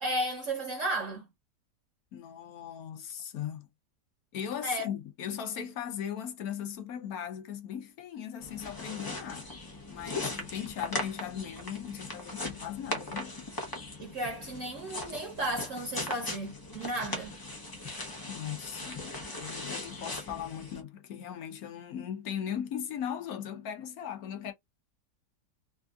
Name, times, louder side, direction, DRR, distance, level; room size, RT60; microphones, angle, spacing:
voice 1, 0.0-1.2 4.6-4.9 14.0-17.3, right 1 dB, 55° right, 1.0 m, -34 dB
voice 2, 2.1-3.7 4.3-9.5 9.9-13.3 18.3-19.0 19.3-24.5, left 9 dB, 65° left, 1.1 m, -38 dB
sound 1, 8.4-20.8, left 2 dB, 25° left, 0.4 m, -39 dB
3.4 x 2.5 x 2.3 m
omnidirectional pair, 1.8 m